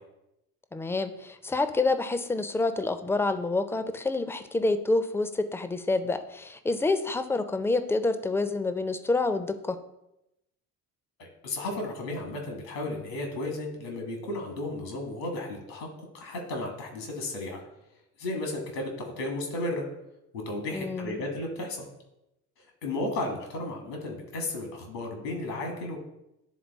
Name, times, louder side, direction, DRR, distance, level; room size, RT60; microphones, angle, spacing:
voice 1, 0.7-9.8 20.7-21.1, left 3 dB, 5° left, 10 dB, 0.3 m, -28 dB
voice 2, 11.2-17.6 18.2-19.8 20.3-21.9 22.6-26.0, left 2 dB, 85° left, 2 dB, 1.6 m, -34 dB
10.5 x 3.7 x 3.5 m, 0.87 s
hypercardioid pair, 55°, 48 cm